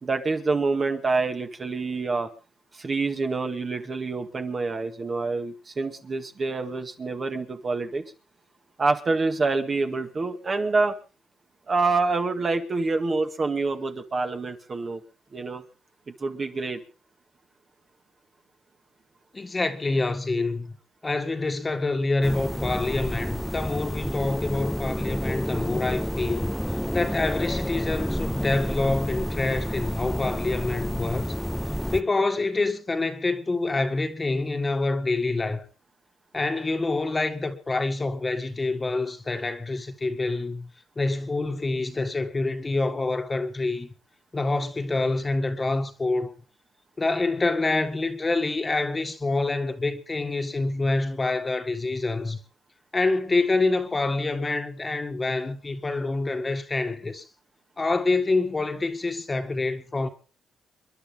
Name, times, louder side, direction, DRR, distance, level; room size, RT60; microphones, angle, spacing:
voice 1, 0.0-2.3 2.7-8.0 8.8-10.9 11.7-15.0 15.3-15.6 16.2-16.8, right 3 dB, 35° right, 2.0 m, -26 dB
voice 2, 19.3-20.7 21.0-31.3 31.9-35.7 36.3-40.7 41.0-43.9 44.3-46.3 47.0-52.4 52.9-57.2 57.8-60.1, left 3 dB, 25° left, 1.8 m, -26 dB
sound 1, 22.2-32.0, equal, ahead, 0.8 m, -29 dB
29.0 x 11.0 x 3.8 m
cardioid pair, 90°, 0 cm